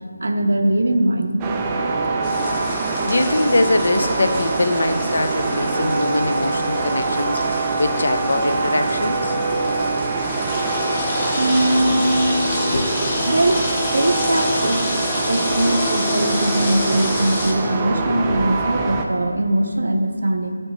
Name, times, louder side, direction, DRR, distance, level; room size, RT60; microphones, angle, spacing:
voice 1, 0.2-1.4 11.4-12.2 13.3-15.0 15.3-20.6, right 1 dB, 65° right, 5 dB, 0.7 m, -21 dB
sound 1, 1.4-19.0, right 3 dB, 10° right, 0.3 m, -24 dB
sound 2, 2.2-17.5, left 2 dB, 15° left, 0.7 m, -30 dB
voice 2, 2.7-9.4 12.6-13.2 18.0-18.4, left 2 dB, 60° left, 8 dB, 0.6 m, -23 dB
12.0 x 6.5 x 3.1 m, 2.1 s
figure-of-eight pair, 175°, 0 cm